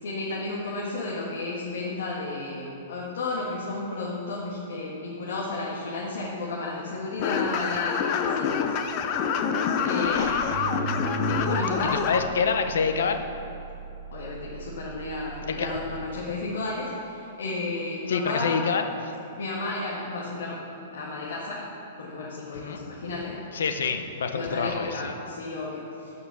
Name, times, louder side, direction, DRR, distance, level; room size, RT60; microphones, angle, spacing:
voice 1, 0.0-8.8 9.8-10.7 11.3-12.0 14.1-18.6 19.4-20.6 20.9-21.7 22.0-23.4 24.3-26.2, left 3 dB, 70° left, -4 dB, 1.9 m, -33 dB
sound 1, 7.2-12.2, left 7 dB, 25° left, 0.5 m, -26 dB
sound 2, 10.0-16.1, right 5 dB, 60° right, 1.2 m, -37 dB
voice 2, 11.9-13.3 15.6-15.7 18.1-19.1 22.5-22.8 23.5-25.1, left 5 dB, 85° left, 7 dB, 1.0 m, -27 dB
14.0 x 5.9 x 7.0 m, 2.8 s
hypercardioid pair, 180°, 0 cm